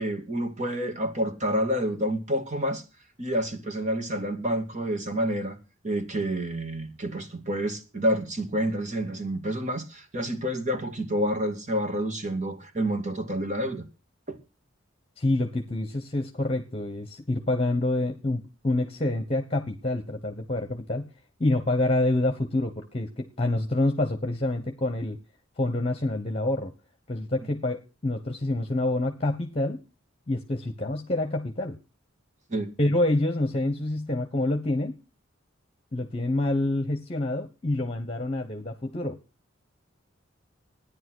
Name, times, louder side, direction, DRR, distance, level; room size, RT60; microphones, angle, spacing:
voice 1, 0.0-2.8 3.2-5.6 5.8-13.8 14.3-14.4 32.5-32.7, equal, 35° right, 2.4 m, -28 dB
voice 2, 15.2-21.1 21.4-25.2 25.6-26.7 27.1-29.8 30.3-31.8 32.8-35.0 35.9-39.2, left 2 dB, 30° left, 1.2 m, -27 dB
14.0 x 10.0 x 6.3 m
head